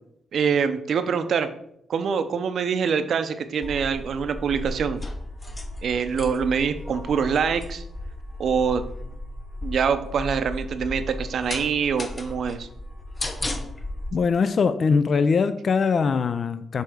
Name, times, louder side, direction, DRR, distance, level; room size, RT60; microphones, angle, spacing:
voice 1, 0.3-1.5 1.9-5.0 5.8-7.8 8.4-8.8 9.6-12.7, right 6 dB, 65° right, 0.5 m, -24 dB
sound 1, 3.6-14.1, left 1 dB, 25° left, 0.8 m, -35 dB
voice 2, 14.1-16.8, left 5 dB, 50° left, 0.3 m, -22 dB
6.4 x 3.3 x 4.9 m
cardioid pair, 80°, 0 cm